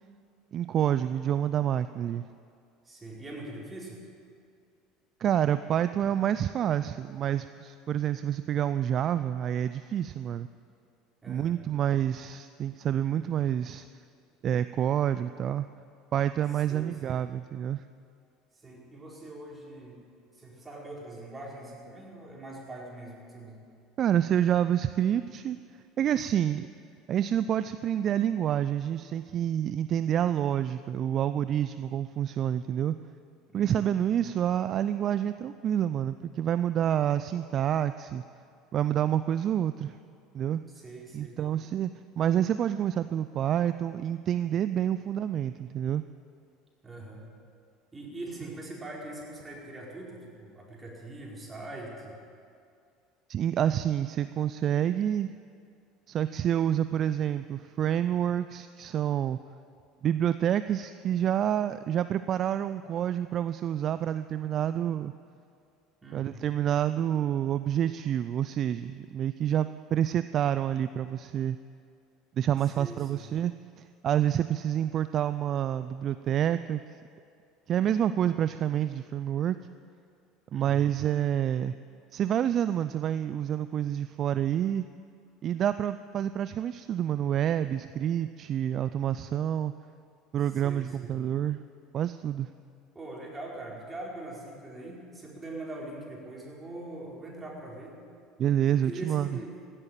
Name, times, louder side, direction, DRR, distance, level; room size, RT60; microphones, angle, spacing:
voice 1, 0.5-2.3 5.2-10.5 11.3-13.9 14.4-15.7 16.1-17.8 24.0-25.6 26.0-26.7 27.1-32.9 33.5-38.2 38.7-40.0 40.3-40.6 41.1-41.9 42.2-46.0 53.3-55.3 56.1-59.4 60.0-65.1 66.1-71.6 72.4-73.5 74.0-76.8 77.7-79.6 80.5-81.8 82.1-84.9 85.4-89.7 90.3-91.6 91.9-92.5 98.4-99.4, right 10 dB, 45° right, 13 dB, 0.4 m, -28 dB
voice 2, 2.8-4.0 11.2-11.6 16.7-17.2 18.6-20.0 20.3-23.6 33.5-33.9 40.7-41.4 46.8-47.3 47.9-52.2 66.0-66.4 72.7-73.3 80.5-80.9 90.6-91.2 92.9-98.0 98.7-99.5, right 2 dB, 20° right, -3 dB, 4.8 m, -42 dB
16.0 x 8.9 x 9.0 m, 2.4 s
figure-of-eight pair, 70°, 0 cm